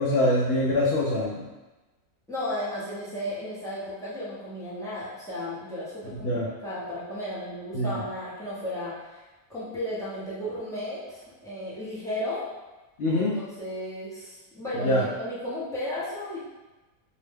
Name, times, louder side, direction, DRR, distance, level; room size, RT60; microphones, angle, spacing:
voice 1, 0.0-1.4 6.2-6.5 7.7-8.0 13.0-13.4 14.7-15.1, left 1 dB, 65° left, -5 dB, 0.6 m, -24 dB
voice 2, 2.3-9.2 9.5-12.4 13.1-13.3 13.6-16.4, left 1 dB, 5° left, -11 dB, 0.3 m, -34 dB
2.7 x 2.1 x 3.2 m, 1.1 s
omnidirectional pair, 1.5 m